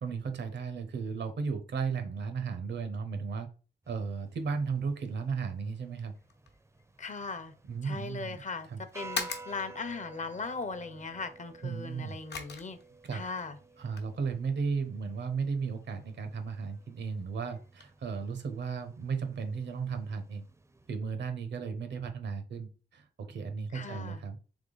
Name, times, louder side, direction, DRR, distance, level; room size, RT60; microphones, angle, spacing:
voice 1, 0.0-3.5 3.9-6.1 7.6-8.8 11.6-12.2 13.0-13.2 13.8-20.4 20.9-24.4, right 5 dB, 80° right, 8 dB, 0.8 m, -35 dB
sound 1, 3.8-20.9, right 3 dB, 15° right, 0.5 m, -53 dB
sound 2, 6.1-17.9, left 5 dB, 70° left, 0.9 m, -46 dB
voice 2, 7.0-7.5 7.8-8.7 8.9-12.8 13.1-13.6 23.7-24.2, left 4 dB, 40° left, 10 dB, 0.7 m, -38 dB
3.6 x 3.2 x 3.9 m, 0.35 s
cardioid pair, 75°, 18 cm